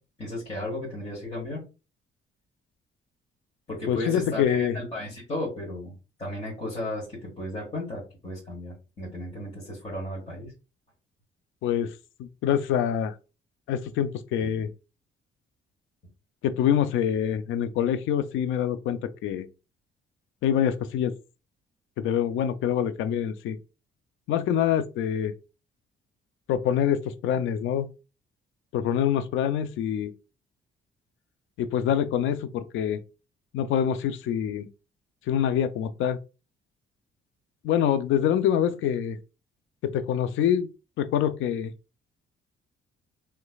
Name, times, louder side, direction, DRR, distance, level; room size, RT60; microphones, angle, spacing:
voice 1, 0.2-1.6 3.7-5.9 6.2-10.5, left 1 dB, 35° left, 1.7 m, -34 dB
voice 2, 3.9-4.8 11.6-11.9 12.2-13.1 13.7-14.7 16.4-19.5 20.4-21.1 22.0-23.6 24.3-25.3 26.5-27.9 28.7-30.1 31.6-33.0 33.5-34.7 35.3-36.2 37.6-39.2 39.8-40.7 41.0-41.7, left 9 dB, 80° left, 0.4 m, -25 dB
3.2 x 3.1 x 2.3 m
cardioid pair, 90°, 20 cm